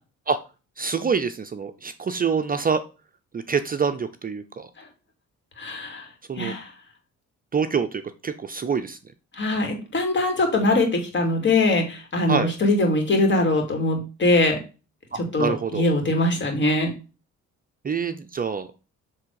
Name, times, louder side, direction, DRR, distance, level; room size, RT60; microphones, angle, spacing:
voice 1, 0.8-2.8 3.3-4.7 6.3-6.5 7.5-9.0 12.3-12.5 15.4-15.9 17.8-18.7, right 6 dB, 30° right, 9 dB, 0.6 m, -26 dB
voice 2, 5.6-6.1 6.4-6.7 9.3-14.6 15.3-16.9, left 2 dB, 40° left, 3 dB, 2.5 m, -22 dB
7.4 x 3.5 x 4.7 m, 0.32 s
cardioid pair, 90°, 30 cm